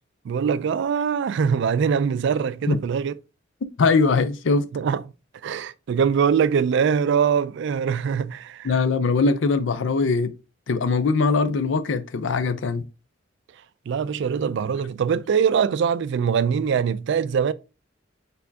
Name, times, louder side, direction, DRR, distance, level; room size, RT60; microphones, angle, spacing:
voice 1, 0.2-3.2 4.7-5.0 5.4-8.7 13.9-17.5, right 7 dB, 65° right, 0.3 m, -22 dB
voice 2, 3.8-4.7 8.6-10.3 10.7-12.9, left 4 dB, 70° left, 0.5 m, -21 dB
4.3 x 3.4 x 2.7 m
head